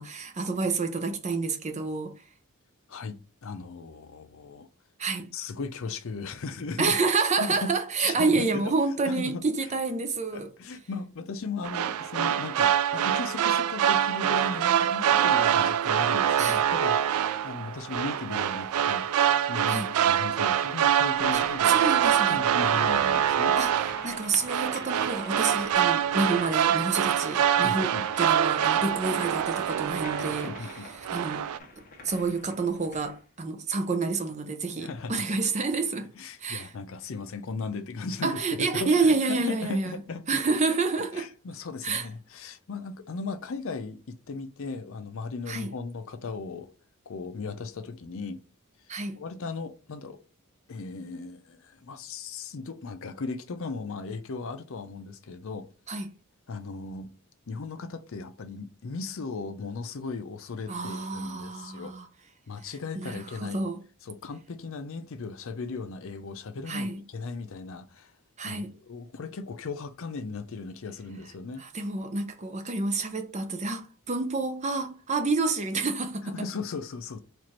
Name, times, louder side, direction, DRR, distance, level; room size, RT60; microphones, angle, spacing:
voice 1, 0.0-2.1 5.0-5.3 6.8-10.5 16.4-16.6 19.7-19.9 21.3-22.4 23.5-23.7 24.0-27.9 28.2-31.5 32.0-36.1 36.4-36.7 38.2-40.0 40.3-41.3 41.8-42.1 45.5-45.7 48.9-49.2 55.9-56.1 60.7-62.1 63.0-63.8 66.7-67.0 68.4-68.7 71.6-76.3, right 3 dB, 30° right, 0.6 m, -28 dB
voice 2, 2.9-4.7 5.3-7.0 7.4-8.7 9.0-9.4 10.3-17.0 17.4-21.9 22.3-23.6 27.6-28.1 30.2-30.9 34.7-35.2 36.1-40.4 40.9-46.7 47.1-48.4 49.2-50.2 50.7-55.7 56.5-57.1 57.5-61.9 62.5-63.6 64.0-68.1 68.4-71.6 76.2-77.2, left 4 dB, 60° left, 0.5 m, -37 dB
sound 1, 11.6-30.7 31.0-31.6, right 9 dB, 80° right, 0.3 m, -25 dB
sound 2, 21.2-33.2, left 3 dB, 40° left, 1.0 m, -47 dB
4.5 x 2.5 x 4.3 m
head